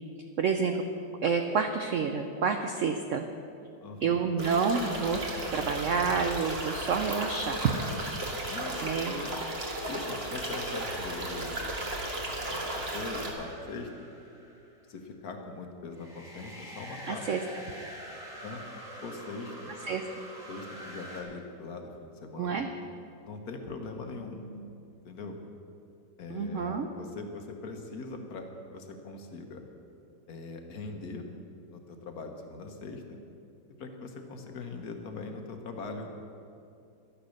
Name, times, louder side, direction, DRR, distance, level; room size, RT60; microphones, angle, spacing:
voice 1, 0.4-0.8 1.2-3.3 4.0-5.2 5.5-7.6 8.8-9.1 17.1-17.4 19.8-20.0 22.4-22.7 26.3-26.9, right 5 dB, 80° right, 6 dB, 0.7 m, -28 dB
voice 2, 3.8-4.2 8.5-9.3 9.9-11.6 12.5-13.9 14.9-17.3 18.4-18.6 19.0-19.7 20.5-22.6 23.2-24.7 25.0-25.4 26.2-29.6 30.3-31.3 31.7-33.2 33.8-36.1, left 3 dB, 55° left, 4 dB, 1.5 m, -41 dB
sound 1, 4.4-13.3, right 1 dB, 35° right, 1.7 m, -35 dB
sound 2, 12.3-14.8 15.9-21.2, equal, ahead, 2.4 m, -45 dB
11.5 x 10.0 x 6.5 m, 2.6 s
omnidirectional pair, 2.1 m